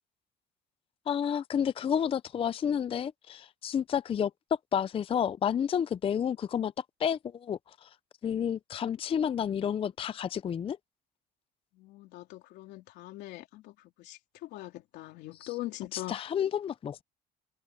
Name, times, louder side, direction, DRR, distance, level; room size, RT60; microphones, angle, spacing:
voice 1, 1.1-4.3 4.7-8.0 8.2-10.8 15.9-17.0, left 8 dB, 35° left, 0.4 m, -30 dB
voice 2, 11.7-16.2, left 17 dB, 85° left, 3.6 m, -42 dB
cardioid pair, 110°, 17 cm